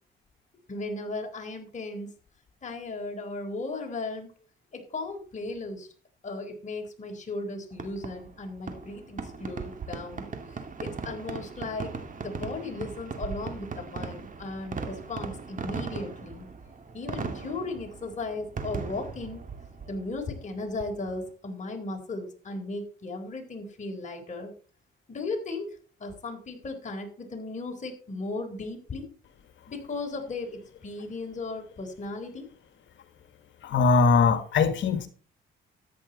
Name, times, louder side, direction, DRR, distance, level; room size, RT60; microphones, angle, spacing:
voice 1, 0.7-2.1 2.6-4.3 4.7-5.9 6.2-11.9 12.2-16.5 16.9-19.4 19.9-24.5 25.1-29.1 29.7-32.5, left 3 dB, 40° left, 4.0 m, -36 dB
Fireworks, 7.7-21.3, right 5 dB, 40° right, 2.5 m, -38 dB
voice 2, 33.6-35.1, left 4 dB, 70° left, 1.7 m, -21 dB
13.5 x 9.6 x 4.2 m
cardioid pair, 90°, 20 cm